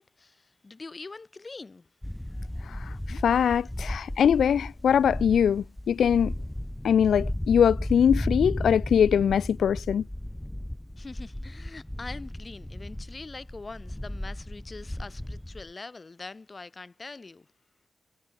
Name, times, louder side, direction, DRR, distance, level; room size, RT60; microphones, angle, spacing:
voice 1, 0.0-1.9 11.0-17.5, left 3 dB, 25° left, 3.7 m, -43 dB
sound 1, 2.0-15.7, left 1 dB, 5° left, 1.6 m, -35 dB
voice 2, 3.1-6.3 6.8-10.0, left 8 dB, 85° left, 0.8 m, -22 dB
wide cardioid pair, 145°, 0 cm